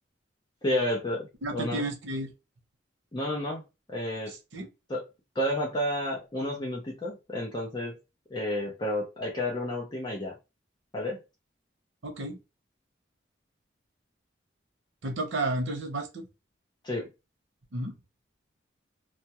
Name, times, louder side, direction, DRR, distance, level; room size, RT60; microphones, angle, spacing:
voice 1, 0.6-1.3 1.5-1.8 3.1-4.3 4.9-5.0 5.4-8.0 8.3-10.3 10.9-11.2 16.8-17.1, left 1 dB, 25° left, 0.5 m, -31 dB
voice 2, 1.4-2.3 4.3-4.7 12.0-12.4 15.0-16.3 17.7-17.9, right 2 dB, 85° right, 0.7 m, -32 dB
2.2 x 2.1 x 2.8 m
head